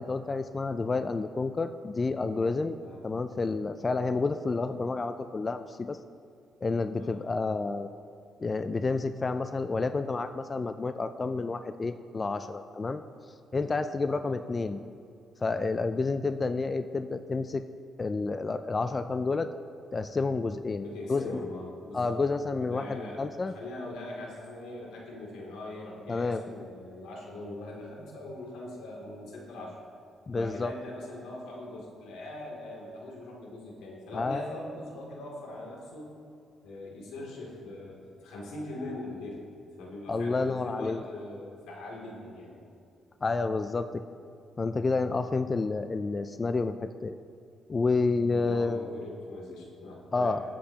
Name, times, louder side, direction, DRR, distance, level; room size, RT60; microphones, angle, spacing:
voice 1, 0.0-2.8 3.0-6.0 6.6-7.9 8.4-13.0 13.5-14.8 15.4-17.6 18.0-19.5 19.9-21.4 21.9-23.5 26.1-26.6 30.3-30.7 34.1-34.5 40.1-41.0 43.2-44.0 44.6-47.2 47.7-48.9 50.1-50.4, left 3 dB, 30° left, 9 dB, 0.4 m, -30 dB
voice 2, 20.8-22.2 22.7-29.8 30.3-36.1 36.6-39.4 39.8-42.5 48.3-50.4, left 2 dB, 90° left, -3 dB, 2.7 m, -41 dB
21.5 x 7.6 x 2.9 m, 2.4 s
cardioid pair, 90°, 0 cm